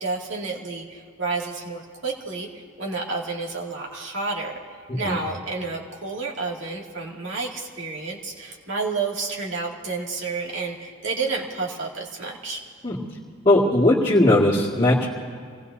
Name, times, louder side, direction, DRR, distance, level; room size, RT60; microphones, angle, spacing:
voice 1, 0.0-2.5 2.8-4.6 4.9-12.6, right 3 dB, 65° right, -2 dB, 2.3 m, -30 dB
voice 2, 13.5-15.1, left 1 dB, 25° left, -10 dB, 2.0 m, -18 dB
26.5 x 19.0 x 2.7 m, 2.1 s
head